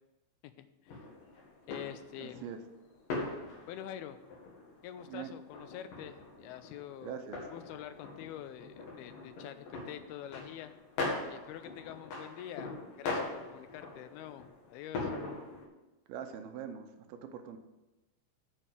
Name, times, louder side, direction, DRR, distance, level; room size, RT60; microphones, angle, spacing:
sound 1, 0.9-15.7, left 3 dB, 60° left, 3.3 m, -42 dB
voice 1, 1.7-2.4 3.7-4.2 4.8-10.7 11.3-15.1, left 11 dB, 80° left, 11 dB, 2.4 m, -46 dB
voice 2, 2.2-2.6 5.0-5.4 7.0-7.4 16.1-17.6, right 8 dB, 75° right, 6 dB, 2.5 m, -43 dB
7.3 x 6.8 x 7.5 m, 1.0 s
omnidirectional pair, 4.6 m